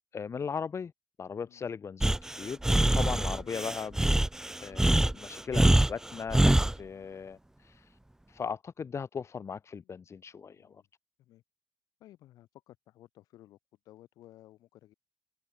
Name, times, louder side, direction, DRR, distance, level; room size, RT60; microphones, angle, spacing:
voice 1, 0.1-0.9 1.2-4.0 4.6-8.0 8.3-10.8, left 6 dB, 50° left, 2.1 m, -38 dB
Breathing, 2.0-6.7, right 1 dB, 10° right, 0.5 m, -24 dB
voice 2, 10.3-10.9 11.2-11.4 12.0-13.6 13.8-14.9, left 14 dB, 80° left, 6.3 m, -57 dB
supercardioid pair, 60°, 6 cm